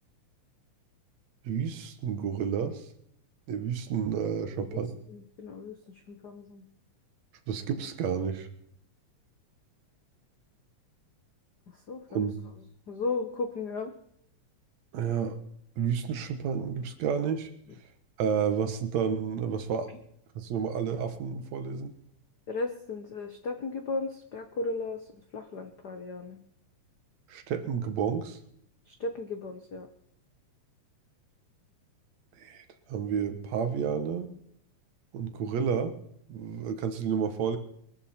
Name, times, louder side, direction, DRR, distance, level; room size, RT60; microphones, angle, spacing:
voice 1, 1.4-2.9 3.5-5.0 7.5-8.5 12.1-12.3 14.9-15.4 15.8-17.5 18.2-20.0 20.4-21.9 27.3-28.4 32.4-34.3 35.1-35.9 36.3-37.6, right 7 dB, 65° right, 8 dB, 2.4 m, -30 dB
voice 2, 5.1-6.6 11.7-12.3 12.9-13.9 22.5-26.4 28.9-29.9, left 3 dB, 85° left, 6 dB, 0.9 m, -35 dB
21.5 x 13.5 x 4.3 m, 0.70 s
omnidirectional pair, 3.5 m